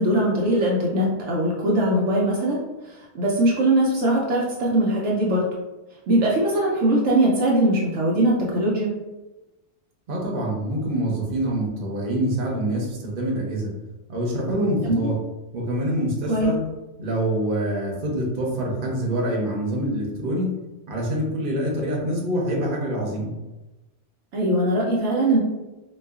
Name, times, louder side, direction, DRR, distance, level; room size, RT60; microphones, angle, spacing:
voice 1, 0.0-5.5 6.1-8.9 14.8-15.1 16.3-16.5 24.3-25.4, right 1 dB, 75° right, -4 dB, 0.9 m, -21 dB
voice 2, 10.1-13.7 14.1-15.2 15.5-16.6 17.0-20.5 20.9-23.3, right 1 dB, 50° right, -2 dB, 0.9 m, -25 dB
3.9 x 2.3 x 2.3 m, 1.1 s
omnidirectional pair, 1.3 m